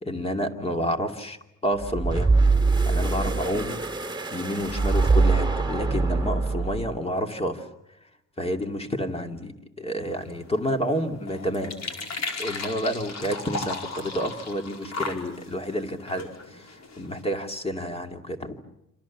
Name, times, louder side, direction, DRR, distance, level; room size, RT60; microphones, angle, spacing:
voice 1, 0.0-2.3 2.9-3.8 4.3-7.6 8.4-11.8 12.4-18.6, equal, 20° left, 5 dB, 2.6 m, -29 dB
sound 1, 1.8-7.0, right 3 dB, 15° right, 2.3 m, -23 dB
sound 2, 10.0-17.2, left 3 dB, 55° left, 4.7 m, -36 dB
27.5 x 27.0 x 7.3 m, 0.87 s
wide cardioid pair, 135°, 32 cm